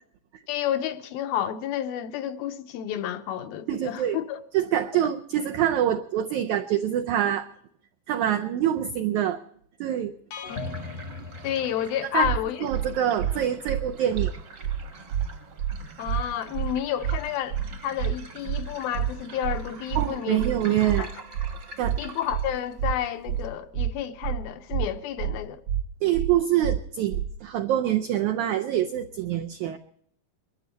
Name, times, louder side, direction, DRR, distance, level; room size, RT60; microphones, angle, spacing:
voice 1, 0.5-4.4 11.4-12.7 16.0-17.6 17.8-21.1 22.0-25.6, left 10 dB, 80° left, 2.6 m, -30 dB
voice 2, 3.7-4.2 4.5-7.5 8.1-9.4 9.8-10.1 12.1-12.3 12.6-14.3 19.9-21.1 21.8-22.0 26.0-29.8, right 11 dB, 85° right, 1.7 m, -25 dB
sound 1, 10.3-12.3, left 4 dB, 65° left, 1.6 m, -37 dB
sound 2, 10.4-23.5, right 3 dB, 50° right, 1.4 m, -45 dB
sound 3, 12.2-12.4 12.7-12.9 13.2-13.3 13.7-13.8 14.1-14.3 14.6-14.8 15.1-15.3 15.6-15.7 16.1-16.2 16.5-16.7 17.0-17.2 17.5-17.7 18.0-18.1 18.5-18.6 18.9-19.1 19.4-19.6 19.9-20.1 20.4-20.5 20.9-21.0 21.3-21.5 21.8-22.0 22.3-22.5 22.8-22.9 23.3-23.4 23.7-23.9 24.2-24.4 24.7-24.9 25.2-25.3 25.7-25.8 26.1-26.3 26.6-26.8 27.1-27.3, right 11 dB, 65° right, 2.1 m, -27 dB
22.5 x 12.5 x 4.0 m
omnidirectional pair, 4.3 m